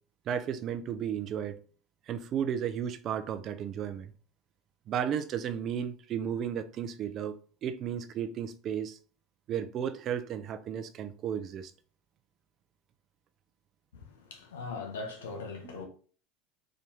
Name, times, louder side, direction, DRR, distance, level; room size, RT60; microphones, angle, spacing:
voice 1, 0.3-1.6 2.1-4.1 4.9-7.4 7.6-9.0 9.5-11.7 15.6-15.7, right 8 dB, 45° right, 0.6 m, -34 dB
voice 2, 13.9-15.9, left 4 dB, 85° left, 1.1 m, -40 dB
4.4 x 2.6 x 3.6 m
hypercardioid pair, 90°, 0 cm